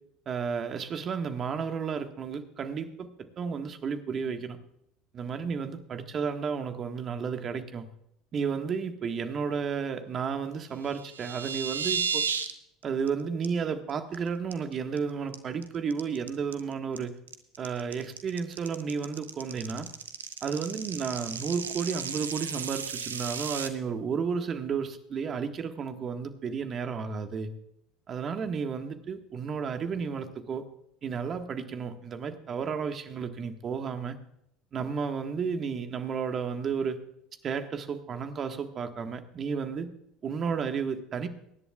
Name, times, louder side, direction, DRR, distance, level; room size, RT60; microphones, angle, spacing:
voice 1, 0.2-4.6 5.1-7.9 8.3-12.3 12.8-17.1 17.6-19.9 20.4-27.5 28.1-30.6 31.0-34.2 34.7-37.0 37.4-39.9 40.2-41.3, right 6 dB, 40° right, 7 dB, 1.6 m, -32 dB
sound 1, 10.8-12.5 12.8-13.1 13.4-13.5 13.9-14.1 14.5-15.0 15.3-23.7, right 6 dB, 85° right, 0.9 m, -34 dB
24.0 x 11.0 x 2.4 m, 0.76 s
hypercardioid pair, 70°, 0 cm